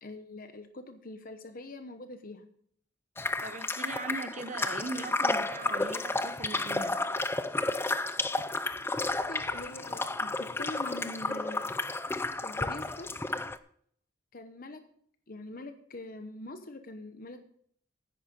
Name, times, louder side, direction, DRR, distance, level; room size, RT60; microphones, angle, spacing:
voice 1, 0.0-2.5 9.1-11.7 12.4-13.1 14.3-14.8 15.3-17.4, left 2 dB, 50° left, 0.9 m, -43 dB
sound 1, 3.2-13.6, left 2 dB, 10° left, 0.4 m, -32 dB
voice 2, 3.4-7.0, right 3 dB, 40° right, 0.9 m, -39 dB
9.9 x 9.8 x 5.1 m
head